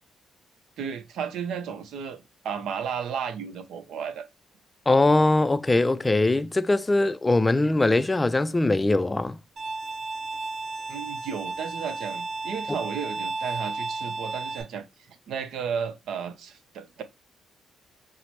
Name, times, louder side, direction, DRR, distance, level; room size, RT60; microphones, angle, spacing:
voice 1, 0.8-4.3 10.9-17.0, right 7 dB, 75° right, 0.6 m, -34 dB
voice 2, 4.9-9.4, left 2 dB, 20° left, 0.3 m, -21 dB
Bowed string instrument, 9.6-14.6, right 3 dB, 50° right, 1.9 m, -33 dB
5.6 x 2.0 x 3.1 m
cardioid pair, 90°, 0 cm